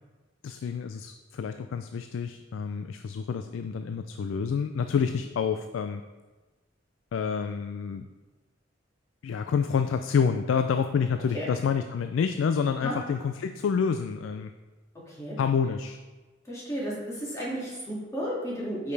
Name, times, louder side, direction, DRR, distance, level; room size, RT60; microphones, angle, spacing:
voice 1, 0.4-6.0 7.1-8.1 9.2-14.5 15.4-16.0, left 6 dB, 90° left, 8 dB, 0.3 m, -28 dB
voice 2, 16.5-18.9, equal, 15° left, -7 dB, 2.2 m, -33 dB
8.6 x 5.2 x 3.3 m, 1.2 s
head